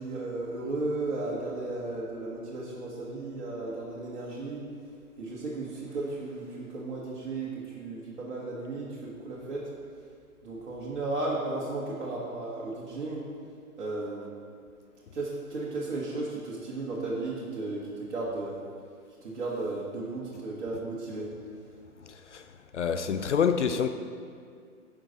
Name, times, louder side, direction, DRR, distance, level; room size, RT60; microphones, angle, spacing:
voice 1, 0.0-4.6 5.2-9.7 10.4-13.2 13.8-14.3 15.1-18.6 19.2-21.3, right 2 dB, 50° right, 1.4 m, -34 dB
voice 2, 22.1-22.5 22.7-23.9, left 7 dB, 55° left, 0.5 m, -27 dB
9.8 x 5.6 x 4.0 m
figure-of-eight pair, 125°, 45 cm